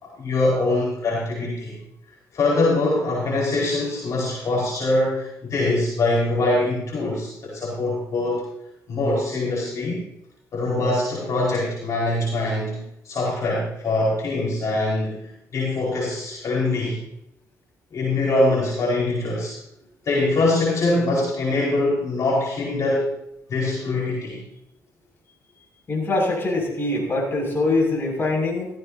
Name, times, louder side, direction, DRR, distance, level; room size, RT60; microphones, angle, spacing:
voice 1, 0.0-1.8 2.3-8.4 8.9-10.0 10.5-17.0 17.9-19.6 20.0-23.1 23.5-24.4, left 2 dB, 55° left, -5 dB, 4.8 m, -23 dB
voice 2, 25.9-28.7, left 2 dB, 35° left, -1 dB, 6.4 m, -23 dB
15.5 x 15.0 x 2.8 m, 0.80 s
cardioid pair, 85°, 6 cm